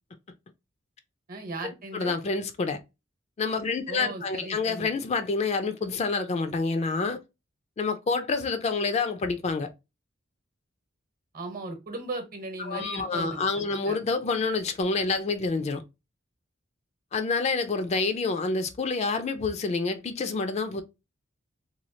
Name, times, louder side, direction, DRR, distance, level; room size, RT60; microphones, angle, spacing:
voice 1, 1.3-2.2 3.9-4.9 11.3-13.4 13.9-14.0, right 2 dB, 50° right, 0.9 m, -37 dB
voice 2, 1.9-2.8 3.4-7.2 7.8-9.7 12.6-15.8 17.1-20.8, left 4 dB, 35° left, 0.4 m, -28 dB
3.0 x 2.3 x 2.6 m
head